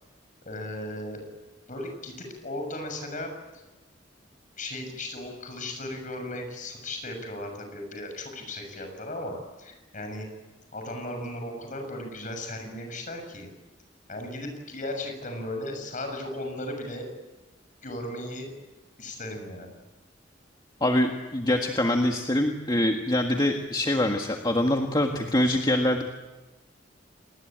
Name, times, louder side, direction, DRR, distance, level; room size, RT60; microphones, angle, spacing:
voice 1, 0.4-1.2 1.7-3.3 4.6-10.3 10.7-13.5 14.1-17.1 17.8-18.5 19.0-19.7, left 1 dB, 45° left, 5 dB, 6.9 m, -36 dB
voice 2, 20.8-26.0, left 1 dB, 25° left, 3 dB, 1.7 m, -24 dB
28.0 x 20.5 x 8.9 m, 1.2 s
head